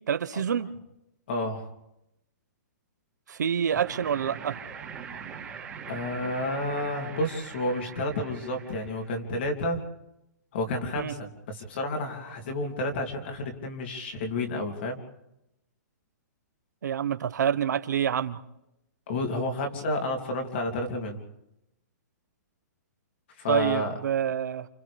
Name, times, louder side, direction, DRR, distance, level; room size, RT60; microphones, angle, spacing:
voice 1, 0.1-0.7 3.3-4.6 11.0-11.1 16.8-18.4 23.5-24.7, right 8 dB, 75° right, 11 dB, 1.2 m, -27 dB
voice 2, 1.3-1.7 5.9-9.8 10.5-15.0 19.1-21.2 23.4-23.9, left 1 dB, 35° left, 3 dB, 2.9 m, -30 dB
sound 1, 3.7-9.2, right 6 dB, 10° right, 2.3 m, -42 dB
29.0 x 28.5 x 3.4 m, 0.86 s
hypercardioid pair, 180°, 9 cm